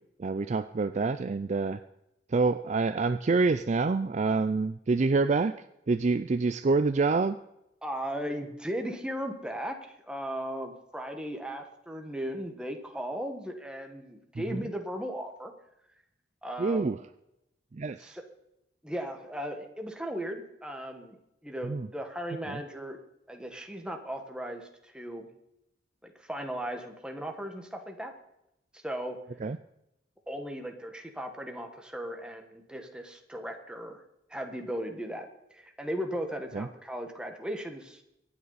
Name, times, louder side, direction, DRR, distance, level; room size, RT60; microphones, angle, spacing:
voice 1, 0.2-1.8 2.3-5.6 5.9-7.4 16.6-17.0 17.7-18.2 21.6-21.9 22.5-22.6 29.4-29.6 36.5-36.7, right 4 dB, 40° right, 12 dB, 0.4 m, -27 dB
voice 2, 7.8-15.5 16.4-16.9 18.0-18.2 18.8-23.0 23.3-25.3 26.0-28.1 28.7-29.2 30.3-34.0 34.3-35.3 35.5-38.0, equal, 5° right, 4 dB, 1.5 m, -37 dB
23.5 x 9.5 x 4.1 m, 0.85 s
head